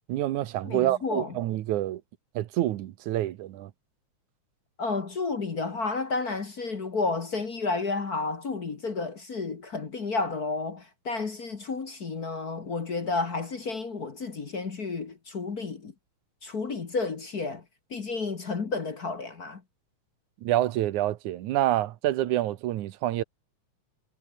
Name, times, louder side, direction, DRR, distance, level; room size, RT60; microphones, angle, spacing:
voice 1, 0.1-2.0 2.4-3.7 20.4-23.2, right 14 dB, 90° right, 2.5 m, -27 dB
voice 2, 0.6-1.3 4.8-15.9 16.4-17.6 17.9-19.6, left 3 dB, 35° left, 1.8 m, -31 dB
omnidirectional pair, 3.4 m